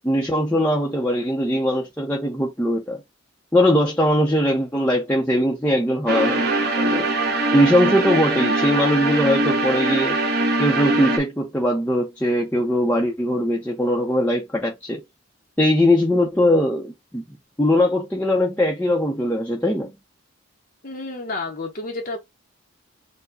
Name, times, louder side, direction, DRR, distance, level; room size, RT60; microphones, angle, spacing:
voice 1, 0.0-3.0 3.5-7.1 7.5-10.2 10.6-15.0 15.6-17.2 17.6-19.9, left 1 dB, 10° left, 0.7 m, -20 dB
sound 1, 6.1-11.2, right 2 dB, 50° right, 1.2 m, -22 dB
voice 2, 20.8-22.2, left 2 dB, 40° left, 0.8 m, -30 dB
4.6 x 2.2 x 3.8 m
head